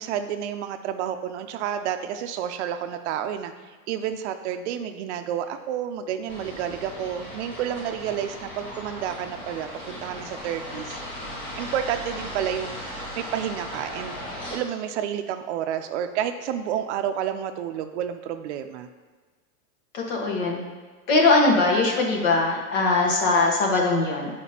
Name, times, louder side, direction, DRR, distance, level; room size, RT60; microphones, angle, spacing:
voice 1, 0.0-11.0 11.6-18.9, right 9 dB, 55° right, 8 dB, 0.5 m, -30 dB
sound 1, 6.3-14.6, equal, 15° left, 0.3 m, -37 dB
voice 2, 19.9-20.6 21.1-24.3, left 3 dB, 65° left, 0 dB, 1.4 m, -21 dB
8.1 x 5.0 x 2.8 m, 1.4 s
supercardioid pair, 150°, 42 cm